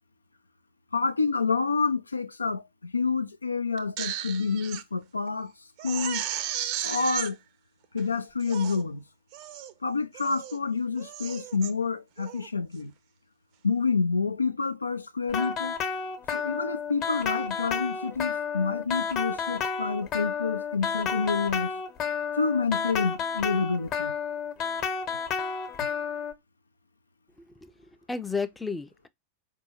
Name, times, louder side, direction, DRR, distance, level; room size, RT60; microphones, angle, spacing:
voice 1, 0.9-5.5 5.8-6.2 6.8-7.4 7.9-9.0 9.8-12.9 13.6-15.8 16.3-21.7 22.3-24.1, left 4 dB, 80° left, 0.3 m, -28 dB
Crying sobbing, 3.8-4.8 5.3-5.4 5.8-7.3 8.0-8.1 8.4-8.8 9.3-9.7 10.1-10.6 11.0-11.7 12.2-12.5, right 11 dB, 45° right, 0.5 m, -34 dB
sound 1, 15.3-26.3, left 6 dB, 35° left, 0.9 m, -31 dB
voice 2, 27.5-29.1, left 4 dB, 10° left, 0.4 m, -33 dB
4.7 x 2.7 x 2.8 m
figure-of-eight pair, 90°, 0 cm